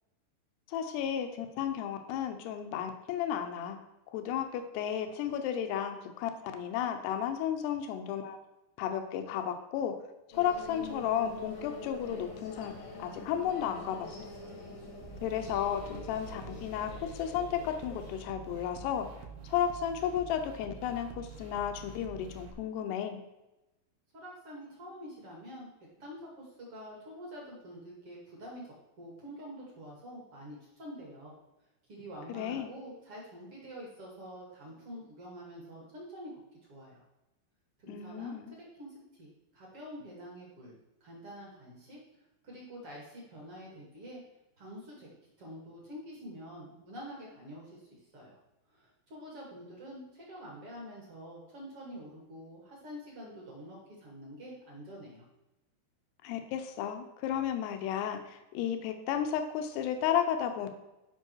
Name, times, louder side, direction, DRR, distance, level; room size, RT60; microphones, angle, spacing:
voice 1, 0.7-3.8 4.1-8.4 8.8-10.0 10.3-14.1 15.2-19.1 19.4-23.2 32.3-32.7 37.9-38.5 56.2-60.7, left 9 dB, 80° left, 7 dB, 2.4 m, -33 dB
sound 1, 10.3-18.1, left 3 dB, 65° left, 1.4 m, -45 dB
sound 2, 15.0-22.5, right 4 dB, 80° right, 3.5 m, -47 dB
voice 2, 24.1-25.7 26.0-31.3 31.9-36.3 36.7-37.0 37.8-40.7 41.0-42.0 42.4-44.2 44.6-45.1 45.4-48.4 48.7-55.2, equal, 45° right, -3 dB, 1.8 m, -47 dB
12.5 x 5.5 x 4.6 m, 0.96 s
omnidirectional pair, 5.8 m